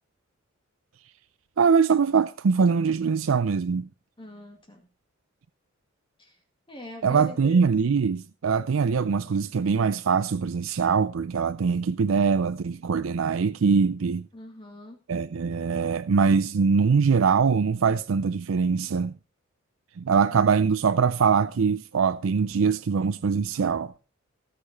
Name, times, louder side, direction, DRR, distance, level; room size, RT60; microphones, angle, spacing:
voice 1, 1.6-3.9 7.0-14.3 15.1-19.1 20.0-23.9, right 5 dB, 90° right, 0.5 m, -23 dB
voice 2, 4.2-4.9 6.2-6.3 6.7-7.6 14.3-15.0, left 2 dB, 25° left, 2.0 m, -42 dB
18.5 x 6.7 x 4.1 m
head